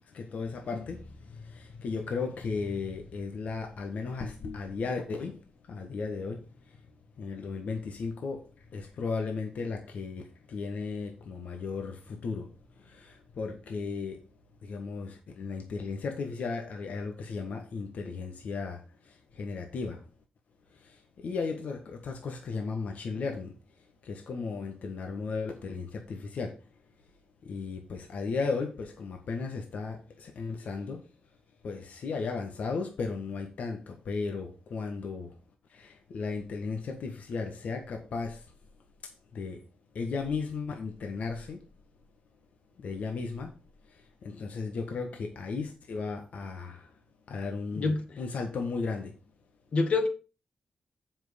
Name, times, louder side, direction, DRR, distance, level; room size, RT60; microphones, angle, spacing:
voice 1, 0.1-5.4 5.7-6.8 7.2-10.2 10.5-14.2 14.6-20.0 20.7-23.6 24.0-26.6 27.4-31.0 31.6-35.3 35.7-38.5 39.0-39.6 39.9-41.6 42.8-43.5 43.9-46.9 47.3-49.2, left 4 dB, 75° left, 1.5 m, -35 dB
voice 2, 47.7-48.2 49.7-50.1, left 3 dB, 55° left, 1.9 m, -26 dB
7.5 x 6.1 x 5.1 m
cardioid pair, 90°, 3 cm